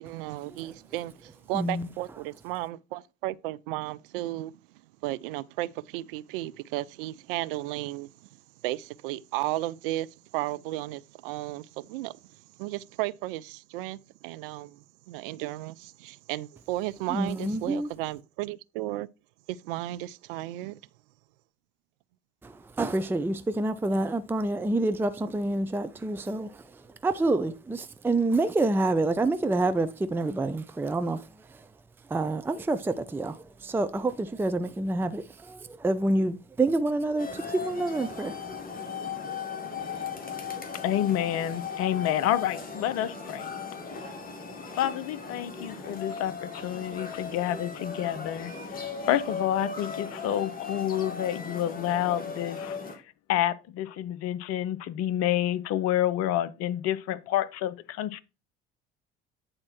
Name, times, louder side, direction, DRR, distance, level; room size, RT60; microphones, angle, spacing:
voice 1, 0.0-4.5 5.0-8.1 8.6-10.1 10.3-12.2 12.6-19.1 19.5-20.8, right 16 dB, 65° right, 0.5 m, -34 dB
voice 2, 1.5-1.9 17.1-17.9 22.4-26.7 27.0-31.7 32.1-38.4, right 2 dB, 5° right, 0.5 m, -28 dB
sound 1, 37.2-53.0, left 5 dB, 30° left, 2.2 m, -37 dB
voice 3, 40.8-43.5 44.8-52.8 53.3-58.2, left 12 dB, 50° left, 0.7 m, -29 dB
8.8 x 4.3 x 4.4 m
figure-of-eight pair, 55°, 30 cm